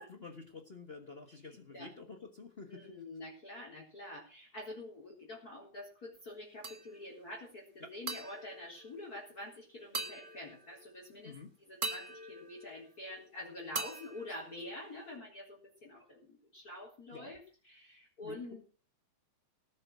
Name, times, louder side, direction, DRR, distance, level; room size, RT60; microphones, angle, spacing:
voice 1, 0.0-3.0 7.8-7.9 11.2-11.5 17.1-17.3 18.2-18.6, left 4 dB, 45° left, 5 dB, 0.7 m, -49 dB
voice 2, 2.7-17.4 17.7-18.7, left 1 dB, 30° left, -2 dB, 4.3 m, -47 dB
sound 1, 6.6-7.2 8.1-9.5 9.9-11.0 11.8-13.3 13.8-15.2, right 3 dB, 30° right, 1.0 m, -43 dB
18.5 x 7.5 x 6.1 m, 0.40 s
omnidirectional pair, 3.4 m